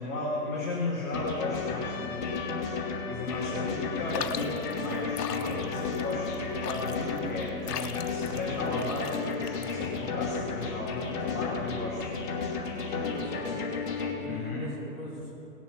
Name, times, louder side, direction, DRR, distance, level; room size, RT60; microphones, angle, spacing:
voice 1, 0.0-2.4 3.1-12.3 12.7-13.0 14.2-14.7, left 2 dB, 10° left, -9 dB, 0.6 m, -35 dB
sound 1, 1.1-14.1, left 4 dB, 30° left, 1.6 m, -33 dB
Trumpet, 1.8-7.1, left 6 dB, 55° left, 1.4 m, -43 dB
sound 2, 4.1-10.1, left 9 dB, 75° left, 0.8 m, -39 dB
voice 2, 13.1-13.6 14.2-15.3, equal, 15° right, -8 dB, 3.2 m, -42 dB
18.0 x 7.1 x 5.7 m, 2.9 s
hypercardioid pair, 165°, 47 cm